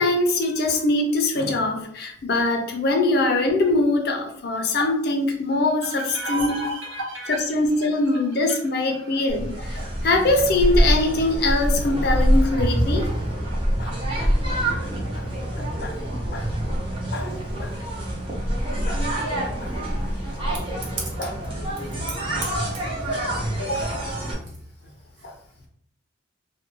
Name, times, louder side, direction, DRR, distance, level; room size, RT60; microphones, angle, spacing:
voice 1, 0.0-6.6 7.3-13.1 13.8-13.9 14.2-14.6 15.1-15.2 15.5-15.9 16.3-16.5 17.1-17.3 17.6-17.7 18.9-19.0 19.6-19.7 20.9-21.5 22.6-22.7 23.6-24.0 25.2-25.3, left 2 dB, 50° left, 3 dB, 0.5 m, -23 dB
voice 2, 6.1-7.4 20.5-20.9 22.4-22.7, right 1 dB, 70° right, -2 dB, 0.9 m, -31 dB
sound 1, 9.3-24.3, equal, 25° right, 0.7 m, -25 dB
2.4 x 2.2 x 2.9 m, 0.65 s
head